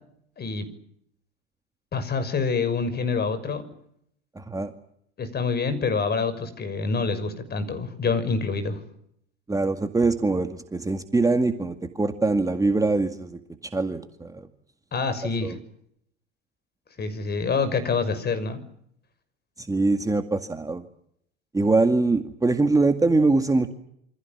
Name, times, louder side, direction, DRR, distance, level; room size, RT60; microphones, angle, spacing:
voice 1, 1.9-3.6 5.2-8.8 14.9-15.6 17.0-18.6, left 4 dB, 30° left, 11 dB, 6.2 m, -26 dB
voice 2, 4.4-4.7 9.5-14.5 15.4-15.5 19.6-20.8 21.5-23.7, right 3 dB, 10° right, 6 dB, 2.1 m, -23 dB
28.0 x 25.5 x 7.4 m, 0.73 s
hypercardioid pair, 85°, 32 cm